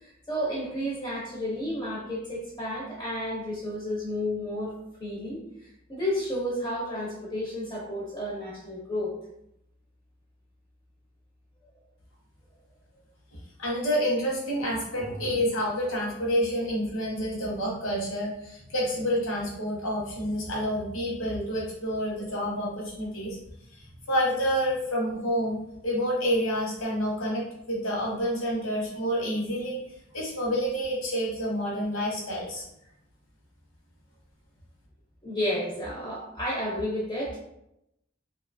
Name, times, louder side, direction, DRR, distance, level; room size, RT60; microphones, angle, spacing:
voice 1, 0.0-4.7 5.0-5.4 5.9-9.1 35.2-37.4, left 1 dB, 20° left, -5 dB, 0.5 m, -31 dB
voice 2, 13.3-23.4 23.7-29.8 30.1-32.6, equal, 85° left, -3 dB, 1.0 m, -28 dB
2.7 x 2.3 x 2.5 m, 0.82 s
head